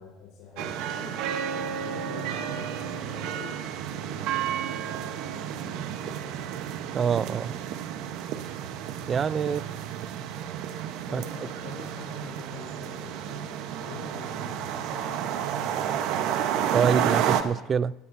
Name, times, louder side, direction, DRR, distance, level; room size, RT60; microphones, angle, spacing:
voice 1, 0.0-6.6 9.5-9.6 11.1-16.6, left 6 dB, 70° left, 4.1 m, -46 dB
sound 1, 0.6-17.4, right 9 dB, 65° right, 1.0 m, -31 dB
voice 2, 6.9-7.6 9.1-9.6 11.1-11.2 16.7-17.9, right 6 dB, 30° right, 0.3 m, -25 dB
18.0 x 17.0 x 2.7 m
cardioid pair, 135°, 0 cm